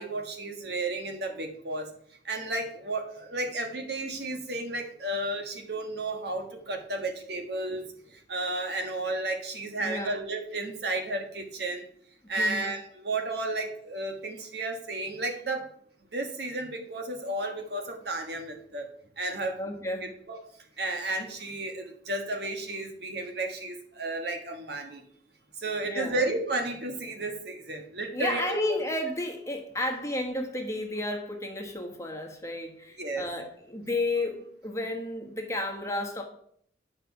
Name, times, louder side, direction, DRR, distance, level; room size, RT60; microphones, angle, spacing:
voice 1, 0.0-1.9 2.2-11.9 12.3-15.7 16.1-18.9 19.2-19.7 20.0-20.4 20.8-25.0 25.6-28.8 33.0-33.3, right 2 dB, 60° right, 4 dB, 1.5 m, -33 dB
voice 2, 9.8-10.2 12.4-12.7 19.6-20.1 25.8-26.2 28.1-36.2, left 1 dB, 15° left, 2 dB, 1.5 m, -32 dB
10.0 x 5.0 x 5.9 m, 0.65 s
head